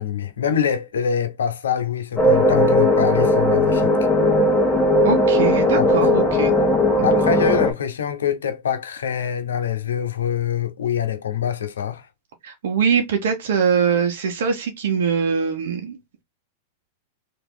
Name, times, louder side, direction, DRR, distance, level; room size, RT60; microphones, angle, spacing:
voice 1, 0.0-3.9 5.8-6.0 7.0-12.1, left 8 dB, 90° left, 0.8 m, -24 dB
sound 1, 2.2-7.7, left 1 dB, 5° left, 1.3 m, -17 dB
voice 2, 5.0-6.5 7.0-7.1 12.4-16.0, right 6 dB, 75° right, 1.0 m, -22 dB
3.0 x 2.8 x 3.6 m
hypercardioid pair, 120°, 0 cm